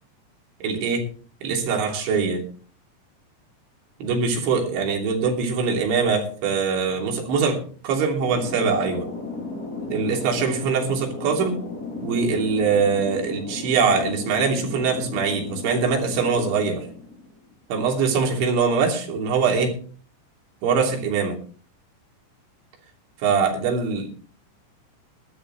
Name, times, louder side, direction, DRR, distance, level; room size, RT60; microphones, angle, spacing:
voice 1, 0.6-1.1 1.4-2.4 4.0-9.1 9.9-11.6 12.0-16.9 17.7-19.8 20.6-21.4 23.2-24.1, right 5 dB, 85° right, 1 dB, 5.5 m, -23 dB
Thunder, 8.2-17.5, left 3 dB, 25° left, 2.4 m, -35 dB
20.5 x 12.5 x 3.1 m, 0.42 s
omnidirectional pair, 5.2 m